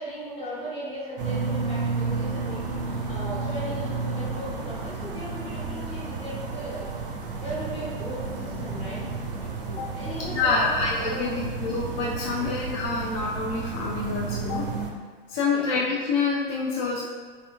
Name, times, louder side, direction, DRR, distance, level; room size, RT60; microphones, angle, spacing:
voice 1, 0.0-6.8 7.3-9.0 10.0-10.7 11.1-11.4 12.4-12.5 15.5-15.7, right 1 dB, 20° left, -8 dB, 1.1 m, -37 dB
sound 1, 1.2-14.9, right 4 dB, 65° right, 0.5 m, -32 dB
voice 2, 10.3-14.6 15.3-17.0, left 4 dB, 40° left, -5 dB, 0.4 m, -27 dB
3.5 x 2.3 x 2.3 m, 1.5 s
figure-of-eight pair, 90°, 29 cm